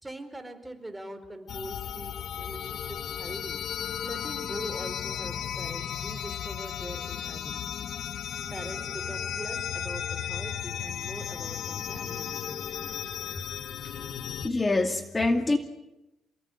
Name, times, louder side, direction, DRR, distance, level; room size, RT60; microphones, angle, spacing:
voice 1, 0.0-3.6 4.0-7.9 8.2-12.6, right 1 dB, 10° right, 8 dB, 4.6 m, -42 dB
sound 1, 1.5-14.5, left 9 dB, 70° left, 1.4 m, -35 dB
voice 2, 12.0-12.3 12.9-13.0 14.4-15.6, left 2 dB, 25° left, 5 dB, 2.4 m, -26 dB
28.5 x 19.0 x 9.2 m, 0.95 s
cardioid pair, 75°, 0 cm